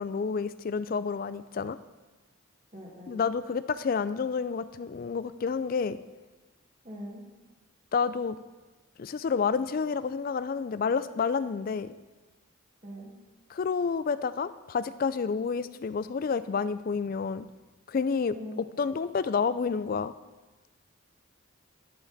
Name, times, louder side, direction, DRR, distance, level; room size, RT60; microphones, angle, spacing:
voice 1, 0.0-1.8 3.1-6.0 7.9-8.4 9.0-11.9 13.5-17.5 17.9-18.3 18.8-20.1, left 5 dB, 45° left, 15 dB, 0.3 m, -29 dB
voice 2, 2.7-3.3 6.8-7.2 12.8-13.2 18.3-18.7, equal, 35° right, -2 dB, 1.8 m, -42 dB
11.5 x 7.3 x 4.0 m, 1.2 s
head